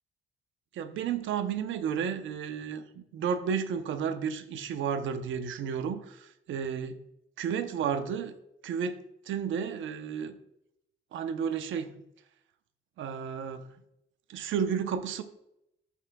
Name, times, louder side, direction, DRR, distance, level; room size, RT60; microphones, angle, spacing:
voice 1, 0.7-7.0 7.4-8.3 8.6-9.0 9.3-10.3 11.1-11.9 13.0-13.6 14.3-15.2, right 7 dB, 75° right, 8 dB, 0.9 m, -32 dB
14.0 x 5.7 x 2.4 m, 0.80 s
cardioid pair, 90°, 20 cm